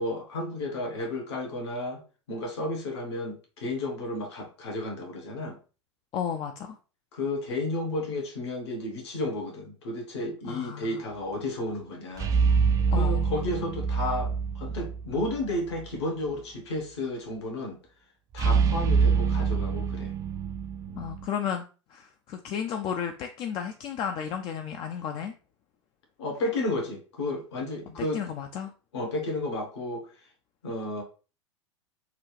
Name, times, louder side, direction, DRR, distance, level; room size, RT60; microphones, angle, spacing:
voice 1, 0.0-2.0 2.3-5.6 7.1-12.3 13.0-17.8 18.3-20.1 20.9-21.1 26.2-28.2 28.9-30.1 30.6-31.0, left 2 dB, 60° left, 1.2 m, -32 dB
voice 2, 6.1-6.8 10.4-11.0 12.9-13.3 21.0-25.3 28.0-28.7, left 8 dB, 30° left, 0.5 m, -33 dB
sound 1, 12.2-15.5 15.7-15.9 18.4-21.3, right 5 dB, 20° right, 0.4 m, -25 dB
5.7 x 2.4 x 3.1 m
figure-of-eight pair, 90°, 16 cm